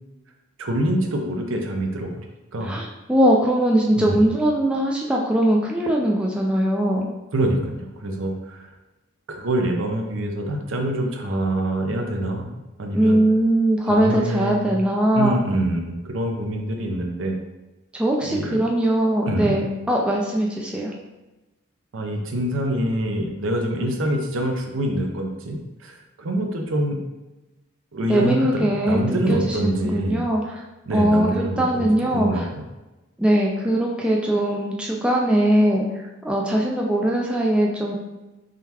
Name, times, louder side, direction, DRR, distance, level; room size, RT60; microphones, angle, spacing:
voice 1, 0.6-2.2 2.5-2.7 3.9-4.2 7.3-8.7 9.3-12.5 12.8-13.2 13.9-14.7 15.1-17.4 18.2-18.6 19.3-19.5 21.9-27.0 27.9-30.2 30.9-32.4, right 1 dB, 65° right, 2 dB, 0.6 m, -25 dB
voice 2, 2.6-7.1 12.9-15.4 17.9-20.9 28.1-30.5 30.9-32.4 33.2-38.0, right 1 dB, 5° right, -2 dB, 0.3 m, -21 dB
3.8 x 3.3 x 2.8 m, 1.0 s
head